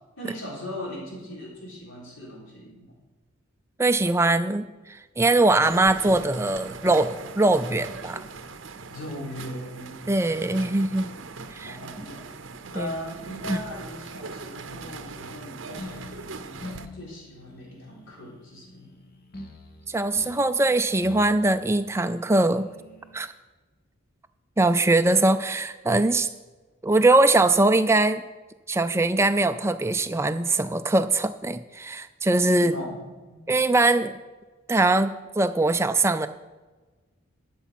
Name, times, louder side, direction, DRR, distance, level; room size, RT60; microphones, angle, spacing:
voice 1, 0.2-3.0 8.9-10.0 10.6-10.7 11.6-12.3 12.7-16.7 16.9-19.0 32.6-33.4, left 1 dB, 60° left, -4 dB, 4.0 m, -39 dB
voice 2, 3.8-8.3 10.1-11.1 11.5-11.8 12.8-12.9 13.5-13.6 19.9-22.7 23.1-23.3 24.6-26.3 26.8-28.2 28.7-32.7 33.5-34.2 34.7-36.3, right 2 dB, 10° right, 10 dB, 0.4 m, -22 dB
sound 1, 5.6-16.9, right 4 dB, 55° right, 0.7 m, -40 dB
sound 2, 15.8-23.3, left 1 dB, 45° left, 1.1 m, -45 dB
12.5 x 7.0 x 5.8 m, 1.3 s
head